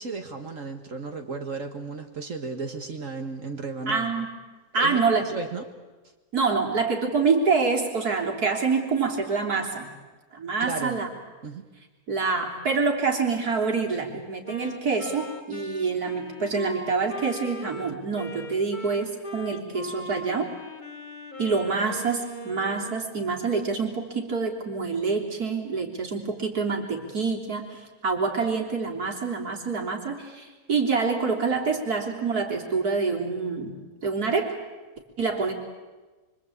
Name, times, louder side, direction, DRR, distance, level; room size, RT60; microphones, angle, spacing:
voice 1, 0.0-4.1 4.8-5.6 10.6-11.0 11.4-11.7, right 4 dB, 60° right, 4 dB, 2.0 m, -34 dB
voice 2, 3.9-4.3 4.7-5.2 6.3-9.9 10.3-11.1 12.1-20.5 21.4-33.7 34.0-34.5 35.2-35.5, right 4 dB, 85° right, 1 dB, 4.1 m, -26 dB
Wind instrument woodwind instrument, 14.4-23.1, left 1 dB, 30° left, 1.9 m, -39 dB
26.5 x 24.5 x 8.6 m, 1.3 s
omnidirectional pair, 1.6 m